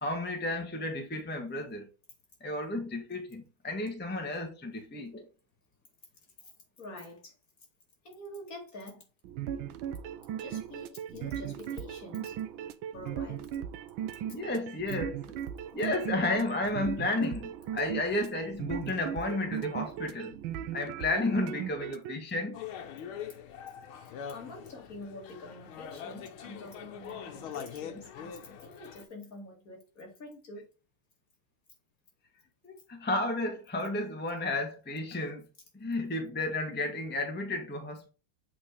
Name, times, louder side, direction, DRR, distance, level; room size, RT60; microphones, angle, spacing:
voice 1, 0.0-1.9 2.4-5.3 14.3-15.4 15.7-20.4 20.7-22.6 32.6-35.4 35.7-38.1, left 2 dB, 15° left, 0.4 m, -32 dB
voice 2, 6.8-7.3 8.0-9.0 10.4-12.4 12.9-13.5 23.9-30.7, left 1 dB, 40° left, 2.5 m, -46 dB
sound 1, 9.2-22.2, right 9 dB, 80° right, 1.4 m, -37 dB
sound 2, 22.5-29.0, left 8 dB, 80° left, 1.7 m, -43 dB
7.3 x 4.4 x 3.3 m
omnidirectional pair, 2.3 m